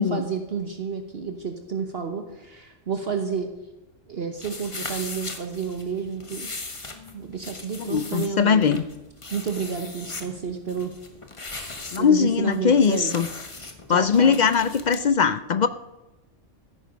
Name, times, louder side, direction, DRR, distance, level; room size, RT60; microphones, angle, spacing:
voice 1, 0.0-3.5 4.1-6.5 7.1-8.6 9.3-10.9 12.0-13.2 13.9-14.4, right 6 dB, 50° right, 6 dB, 1.2 m, -30 dB
sound 1, 4.4-15.0, left 3 dB, 25° left, 1.2 m, -39 dB
voice 2, 7.8-8.8 11.9-13.3 13.9-15.7, left 6 dB, 60° left, 13 dB, 0.4 m, -20 dB
14.0 x 10.0 x 5.2 m, 1.0 s
omnidirectional pair, 1.3 m